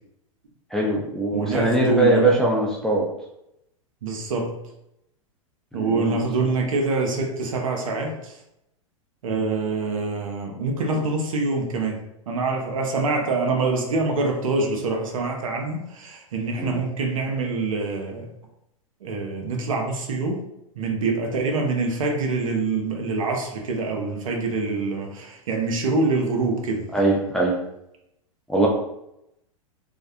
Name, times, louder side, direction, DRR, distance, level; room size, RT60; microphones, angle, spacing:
voice 1, 0.7-3.1 5.7-6.2 16.6-16.8 26.9-27.6 28.5-28.7, right 2 dB, 5° left, -2 dB, 0.4 m, -21 dB
voice 2, 1.3-2.4 4.0-4.6 5.7-8.4 9.2-12.0 12.3-18.3 19.0-20.5 20.8-26.9, right 3 dB, 70° right, 2 dB, 0.6 m, -25 dB
2.3 x 2.1 x 2.6 m, 0.82 s
hypercardioid pair, 100°, 18 cm